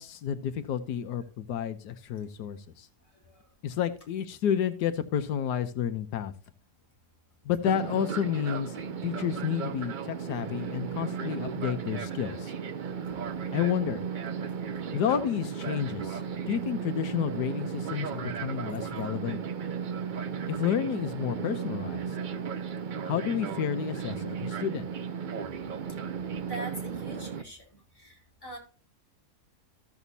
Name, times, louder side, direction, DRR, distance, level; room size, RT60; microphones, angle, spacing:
voice 1, 0.0-2.9 3.6-6.3 7.4-12.5 13.5-14.0 14.9-19.4 20.5-22.2 23.0-24.8, left 9 dB, 90° left, 9 dB, 1.4 m, -30 dB
Fixed-wing aircraft airplane, 7.7-27.4, right 7 dB, 70° right, 0.4 m, -35 dB
voice 2, 26.4-27.6 27.9-28.6, right 1 dB, 15° left, -4 dB, 4.5 m, -42 dB
14.0 x 7.1 x 2.7 m, 0.35 s
omnidirectional pair, 1.7 m